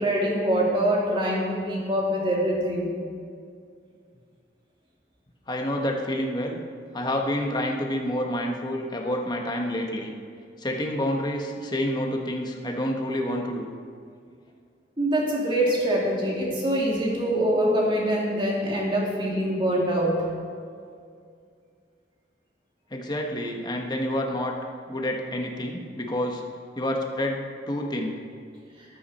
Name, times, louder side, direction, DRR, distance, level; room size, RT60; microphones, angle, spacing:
voice 1, 0.0-2.9 15.0-20.2, right 1 dB, 30° right, -3 dB, 2.7 m, -24 dB
voice 2, 5.5-6.6 6.9-10.1 10.6-13.7 22.9-24.5 24.9-26.4 26.7-27.4 27.7-28.2, left 1 dB, 25° left, 1 dB, 1.3 m, -28 dB
14.0 x 12.0 x 4.3 m, 2.2 s
head